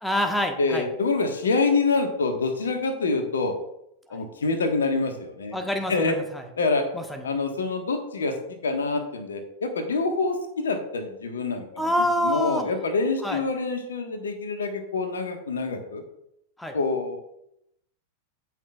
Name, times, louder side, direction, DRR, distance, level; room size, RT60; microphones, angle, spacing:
voice 1, 0.0-0.9 4.1-4.2 5.5-6.4 6.9-7.3 11.8-12.7 13.2-13.4 16.6-16.8, equal, 5° left, 5 dB, 1.2 m, -27 dB
voice 2, 0.6-3.5 4.1-5.6 5.9-6.2 6.6-6.9 7.2-8.3 8.6-11.9 12.2-16.0 16.7-17.2, left 3 dB, 70° left, 6 dB, 1.4 m, -26 dB
17.0 x 6.1 x 2.4 m, 0.79 s
figure-of-eight pair, 90°, 0 cm